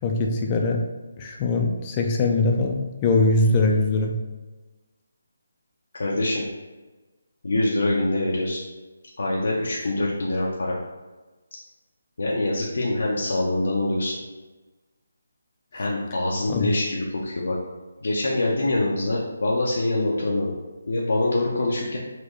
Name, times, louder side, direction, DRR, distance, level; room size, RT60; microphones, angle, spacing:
voice 1, 0.0-0.8 1.2-4.1 16.5-16.7, left 2 dB, 25° left, 1 dB, 0.4 m, -22 dB
voice 2, 6.0-6.4 7.4-8.6 9.2-10.8 12.2-14.1 15.7-17.6 18.0-20.5 20.9-22.0, left 2 dB, 70° left, -4 dB, 0.6 m, -24 dB
4.2 x 2.3 x 3.0 m, 1.2 s
figure-of-eight pair, 160°, 0 cm